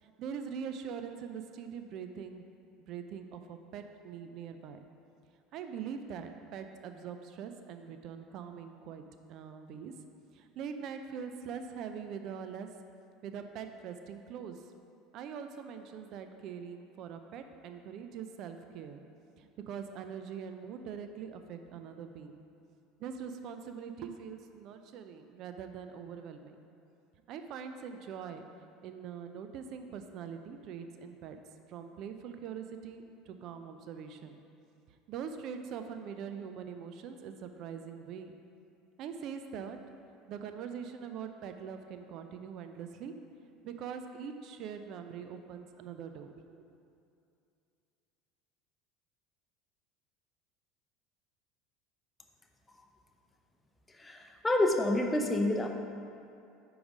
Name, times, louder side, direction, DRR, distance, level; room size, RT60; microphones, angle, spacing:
voice 1, 0.0-2.5 2.9-4.8 5.5-9.9 10.3-12.7 13.2-14.6 15.1-19.0 19.4-22.4 23.0-26.6 27.3-28.5 28.8-31.4 31.7-34.4 34.9-38.3 39.0-39.8 40.3-43.1 43.6-46.6, right 7 dB, 55° right, 7 dB, 0.4 m, -43 dB
voice 2, 53.9-55.7, left 2 dB, 15° left, 3 dB, 0.7 m, -28 dB
4.9 x 4.7 x 5.3 m, 2.5 s
supercardioid pair, 90°, 0 cm